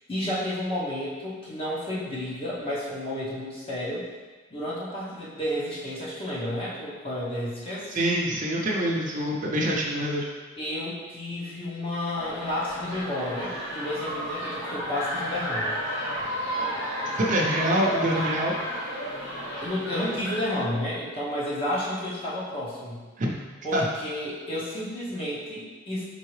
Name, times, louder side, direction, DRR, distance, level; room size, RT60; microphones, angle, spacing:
voice 1, 0.1-4.1 4.5-8.0 10.6-15.8 19.6-23.0 23.6-26.0, left 1 dB, 25° left, -7 dB, 0.9 m, -31 dB
voice 2, 7.9-10.2 17.2-18.5 23.2-23.3 23.7-23.8, right 1 dB, 40° right, -3 dB, 0.6 m, -25 dB
sound 1, 12.2-20.4, equal, 60° left, 1.1 m, -32 dB
4.6 x 3.6 x 3.2 m, 1.3 s
head